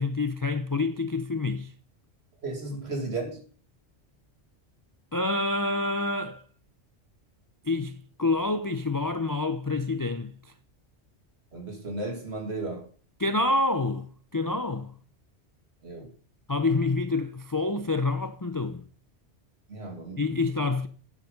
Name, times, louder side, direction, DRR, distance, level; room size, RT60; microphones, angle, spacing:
voice 1, 0.0-1.7 5.1-6.4 7.7-10.3 13.2-14.1 14.3-14.9 16.5-18.8 20.2-20.9, left 3 dB, 35° left, 0.3 m, -27 dB
voice 2, 2.4-3.4 11.5-12.9 15.8-16.1 19.7-20.3, right 2 dB, 65° right, 2.7 m, -34 dB
9.5 x 7.4 x 5.2 m
omnidirectional pair, 1.2 m